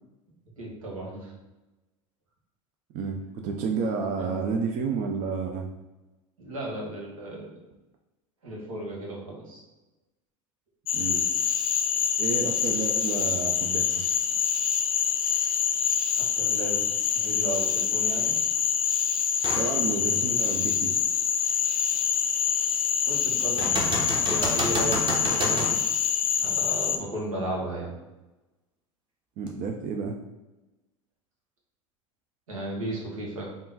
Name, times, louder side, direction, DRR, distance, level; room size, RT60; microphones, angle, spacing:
voice 1, 0.6-1.3 4.2-4.5 6.4-7.6 8.4-9.6 16.2-16.8 17.1-18.4 23.0-25.8 26.4-27.9 32.5-33.5, right 1 dB, 85° right, -3 dB, 1.2 m, -34 dB
voice 2, 2.9-5.7 10.9-11.3 12.2-14.0 19.6-21.0 29.4-30.2, right 5 dB, 50° right, 3 dB, 0.5 m, -30 dB
Cricket / Frog, 10.9-27.0, left 8 dB, 85° left, 0.4 m, -26 dB
sound 1, 19.4-19.7 20.3-20.4 23.6-25.8 29.5-29.6, right 2 dB, 30° right, 1.0 m, -29 dB
3.7 x 2.4 x 3.9 m, 1.1 s
hypercardioid pair, 80°, 17 cm